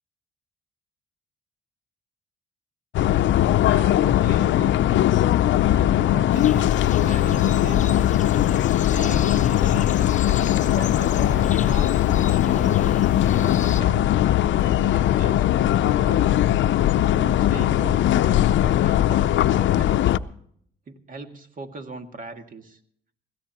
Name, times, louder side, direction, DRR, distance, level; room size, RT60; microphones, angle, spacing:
sound 1, 2.9-20.2, left 12 dB, 70° left, 0.6 m, -20 dB
voice 1, 3.6-5.1 5.7-8.0 8.8-10.4 10.7-16.3 17.0-20.2 20.9-22.8, right 3 dB, 45° right, 5 dB, 2.1 m, -39 dB
sound 2, 6.3-13.8, left 6 dB, 40° left, 0.8 m, -35 dB
21.5 x 16.5 x 3.0 m, 0.64 s
cardioid pair, 90°, 20 cm